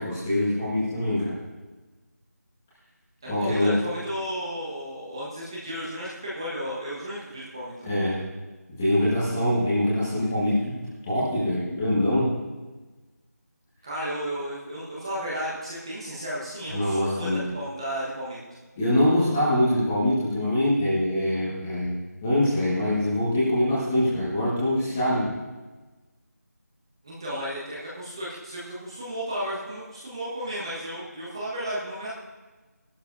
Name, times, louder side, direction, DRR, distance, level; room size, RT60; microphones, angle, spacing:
voice 1, 0.0-1.3 3.2-3.8 7.8-8.2 8.8-12.3 16.7-17.4 18.8-25.3, left 1 dB, 10° left, -9 dB, 1.6 m, -24 dB
voice 2, 3.2-7.9 13.8-18.4 27.0-32.1, equal, 15° right, -7 dB, 1.4 m, -33 dB
16.5 x 12.0 x 2.7 m, 1.2 s
figure-of-eight pair, 175°, 9 cm